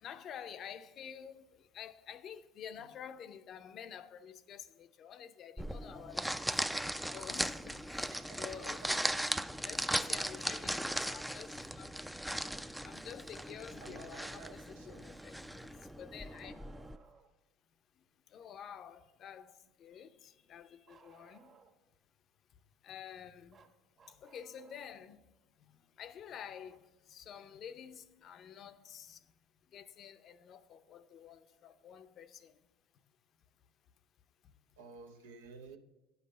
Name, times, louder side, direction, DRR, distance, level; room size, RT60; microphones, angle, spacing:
voice 1, 0.0-1.4 1.7-6.3 7.1-9.2 9.6-12.0 12.8-15.7 16.0-16.6 18.3-19.5 19.8-21.5 22.8-23.6 24.2-25.2 26.0-29.2 29.7-32.5, left 8 dB, 50° left, 0.6 m, -49 dB
sound 1, 5.6-17.0, equal, 5° right, 0.4 m, -38 dB
voice 2, 8.1-9.4 13.8-15.1 34.8-35.8, right 5 dB, 85° right, 0.8 m, -53 dB
Bark, 16.2-17.3 20.9-21.9 23.5-25.0 26.7-26.8 28.7-28.8 29.9-30.0, right 5 dB, 45° right, 1.5 m, -62 dB
9.8 x 5.5 x 6.4 m
hypercardioid pair, 80°, 0 cm